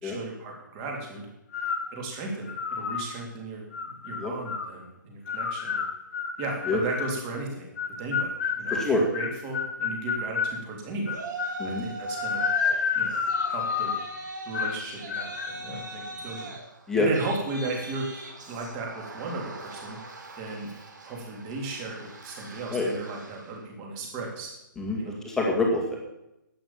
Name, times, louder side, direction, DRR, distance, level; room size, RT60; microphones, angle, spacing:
voice 1, 0.0-1.3 1.9-3.6 4.0-5.8 6.4-7.7 8.0-11.2 11.6-12.5 12.9-13.2 13.5-13.9 14.4-16.5 16.9-20.0 20.4-20.7 21.0-24.5 25.0-25.2, right 2 dB, 20° right, 0 dB, 3.2 m, -35 dB
sound 1, 1.5-1.9 2.5-3.1 3.7-4.7 5.3-7.2 7.8-10.6 11.1-11.6 12.1-14.1 14.5-14.8 15.1-15.5, left 6 dB, 45° left, 1.5 m, -30 dB
voice 2, 8.7-9.0 11.6-11.8 16.9-17.1 22.7-22.9 24.8-26.0, left 3 dB, 5° left, -2 dB, 2.1 m, -26 dB
Yell, 11.1-12.8 13.1-23.5, right 3 dB, 60° right, 3.8 m, -41 dB
11.5 x 9.5 x 7.2 m, 0.89 s
hypercardioid pair, 160°, 11 cm